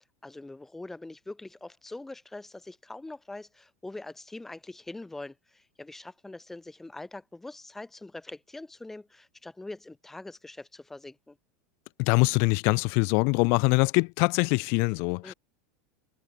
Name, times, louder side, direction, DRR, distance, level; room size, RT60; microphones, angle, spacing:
voice 1, 0.2-11.4 15.2-15.3, left 2 dB, 5° left, 1.6 m, -43 dB
voice 2, 12.0-15.3, left 35 dB, 50° left, 0.7 m, -23 dB
supercardioid pair, 160°, 5 cm